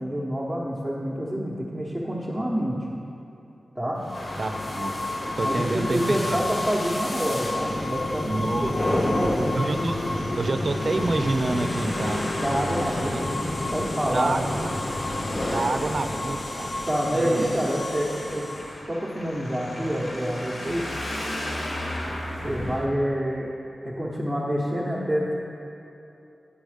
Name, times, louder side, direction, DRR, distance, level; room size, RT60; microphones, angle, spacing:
voice 1, 0.0-2.8 3.7-4.0 5.4-9.5 12.4-13.4 13.7-14.4 15.4-15.7 16.9-18.5 18.9-20.8 22.4-23.5 23.8-25.3, equal, ahead, -7 dB, 1.0 m, -27 dB
sound 1, 4.0-18.8, left 1 dB, 45° left, 0.7 m, -29 dB
Traffic noise roadway noise, 4.1-22.8, left 1 dB, 65° left, 1.1 m, -37 dB
voice 2, 4.4-4.9 5.4-6.5 8.2-8.7 9.5-9.9 10.4-12.3 13.1-13.2 14.1-14.7 15.5-16.7 17.1-17.6 22.6-22.8, right 3 dB, 55° right, 7 dB, 0.5 m, -28 dB
9.8 x 5.2 x 5.0 m, 2.8 s
cardioid pair, 65°, 0 cm